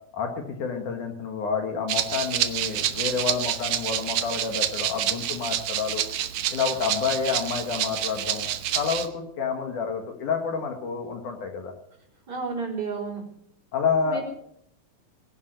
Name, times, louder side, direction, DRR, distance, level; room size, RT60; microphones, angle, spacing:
voice 1, 0.1-6.0 6.5-8.5 8.8-11.7 13.7-14.2, left 5 dB, 65° left, 4 dB, 3.0 m, -29 dB
Rattle (instrument), 1.9-9.1, right 11 dB, 70° right, 1.8 m, -28 dB
voice 2, 12.3-13.2 14.1-14.2, right 4 dB, 30° right, -3 dB, 4.5 m, -31 dB
19.5 x 11.0 x 6.5 m, 0.71 s
omnidirectional pair, 4.2 m